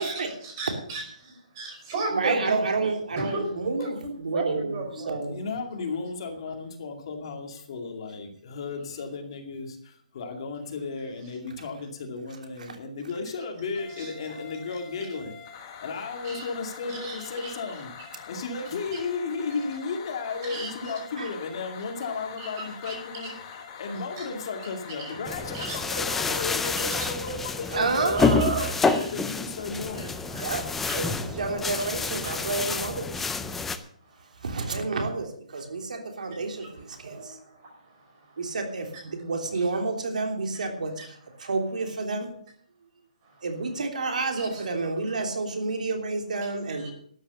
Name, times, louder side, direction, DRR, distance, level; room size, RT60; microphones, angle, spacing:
voice 1, 0.0-2.9 3.2-3.4 3.8-5.3 14.0-14.1 16.2-16.4 16.9-17.5 18.9-19.0 20.5-20.9 22.4-22.5 22.8-23.3 24.2-24.3 25.0-25.1 25.5-25.8 27.0-27.1 28.2-29.4 30.0-30.4 30.8-31.0 32.2-32.3 32.7-32.8 34.0-34.4 36.6-38.4 39.5-39.6 41.0-41.1 41.4-41.5 43.2-43.5 44.4-44.7 46.7-46.9, right 3 dB, 30° right, 1 dB, 5.1 m, -37 dB
voice 2, 2.1-5.3 12.7-12.8 21.2-21.3 27.7-28.7 30.4-30.7 30.9-33.5 34.4-37.4 38.4-42.3 43.4-46.9, right 3 dB, 75° right, 4 dB, 3.2 m, -29 dB
voice 3, 5.3-23.3 23.8-28.4 28.9-30.1, left 4 dB, 40° left, 4 dB, 2.3 m, -34 dB
sound 1, 13.8-25.8, left 7 dB, 25° left, 1.8 m, -44 dB
sound 2, 25.3-33.8, left 4 dB, 5° left, 0.5 m, -28 dB
12.5 x 9.6 x 6.8 m, 0.62 s
hypercardioid pair, 170°, 4 cm